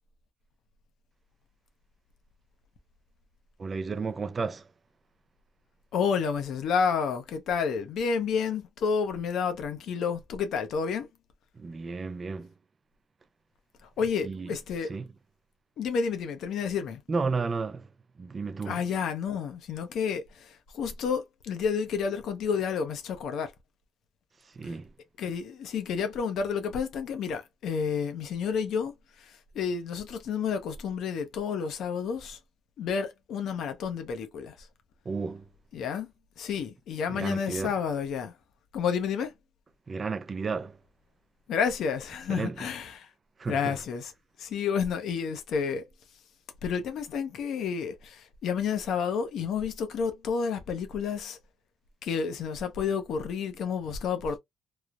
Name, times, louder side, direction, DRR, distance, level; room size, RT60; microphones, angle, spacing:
voice 1, 3.6-4.7 11.6-12.5 14.2-14.5 14.9-15.1 17.1-17.9 18.2-18.8 24.5-24.9 35.1-35.5 37.1-37.7 39.9-40.8 42.3-42.7 43.4-43.8, right 4 dB, 35° right, 0.4 m, -32 dB
voice 2, 5.9-11.1 13.8-15.0 15.8-17.0 18.7-23.5 24.6-24.7 25.2-32.4 32.8-34.7 35.7-36.1 36.4-38.3 38.7-39.3 41.5-43.1 43.5-44.1 44.4-45.8 46.6-51.4 52.0-54.4, left 6 dB, 75° left, 0.6 m, -30 dB
3.1 x 2.0 x 2.2 m
cardioid pair, 90°, 0 cm